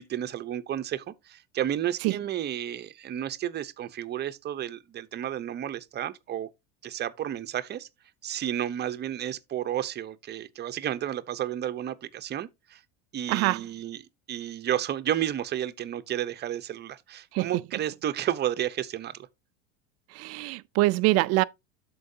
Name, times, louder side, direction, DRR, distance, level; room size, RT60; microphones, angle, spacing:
voice 1, 0.0-6.5 6.8-7.9 8.2-12.8 13.1-19.2, right 11 dB, 30° right, 0.8 m, -32 dB
voice 2, 13.3-13.6 17.3-17.5 20.1-21.4, right 20 dB, 45° right, 0.4 m, -24 dB
13.0 x 4.7 x 2.7 m
supercardioid pair, 125°, 34 cm